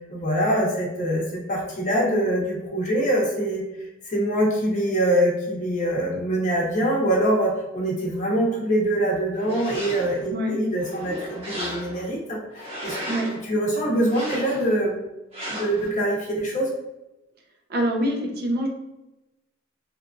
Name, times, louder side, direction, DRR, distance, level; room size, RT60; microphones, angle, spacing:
voice 1, 0.1-3.6 4.1-13.0 13.3-15.0 15.5-16.7, right 1 dB, 40° left, -2 dB, 0.7 m, -24 dB
sound 1, 9.3-10.3 10.8-12.1 12.5-13.4 14.0-14.8 15.3-15.9, equal, 30° right, 1.0 m, -35 dB
voice 2, 17.7-18.7, equal, 50° right, 1 dB, 0.5 m, -25 dB
2.8 x 2.5 x 2.2 m, 0.98 s
head